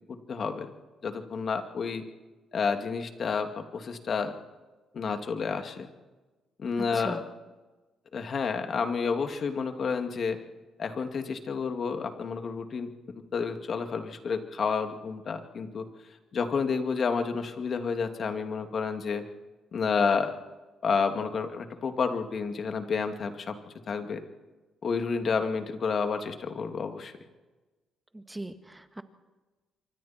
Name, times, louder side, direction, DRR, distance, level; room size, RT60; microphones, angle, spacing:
voice 1, 0.1-0.7 1.0-2.1 2.5-4.3 4.9-5.9 6.6-7.2 8.1-10.4 10.8-12.9 13.3-15.9 16.3-19.2 19.7-20.3 20.8-23.6 23.9-24.2 24.8-27.1, left 5 dB, 50° left, 6 dB, 2.4 m, -30 dB
voice 2, 6.8-7.2 28.1-29.0, right 1 dB, 10° right, 8 dB, 1.8 m, -39 dB
27.0 x 24.5 x 4.5 m, 1.2 s
cardioid pair, 90°, 0 cm